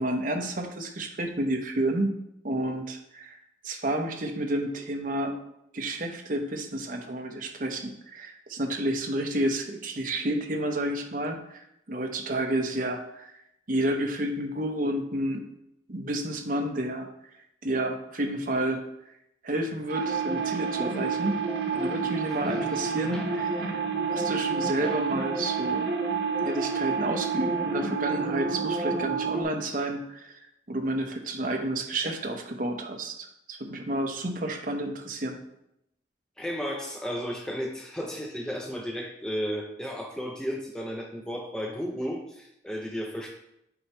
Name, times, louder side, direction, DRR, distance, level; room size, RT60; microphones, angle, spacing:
voice 1, 0.0-2.1 2.4-3.4 3.6-5.4 5.7-13.3 13.7-15.4 15.9-17.1 17.6-18.8 19.4-21.4 21.7-23.8 24.1-25.9 26.4-30.4 30.7-35.4, right 1 dB, 50° right, 3 dB, 0.8 m, -30 dB
sound 1, 19.9-29.4, right 5 dB, 75° right, 1.5 m, -29 dB
voice 2, 22.4-22.8 23.1-23.3 24.8-25.0 36.4-43.3, equal, 5° left, 1 dB, 0.5 m, -34 dB
7.7 x 4.4 x 3.0 m, 0.79 s
head